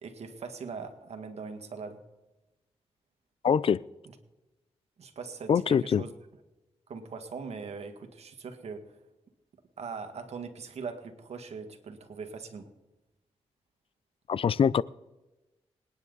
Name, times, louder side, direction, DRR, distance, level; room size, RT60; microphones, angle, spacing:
voice 1, 0.0-2.0 5.0-6.1 6.9-8.9 9.8-12.7, right 5 dB, 70° right, 2.0 m, -41 dB
voice 2, 3.4-3.8 5.5-6.0 14.3-14.8, left 7 dB, 55° left, 0.4 m, -24 dB
26.0 x 9.9 x 4.0 m
cardioid pair, 80°, 11 cm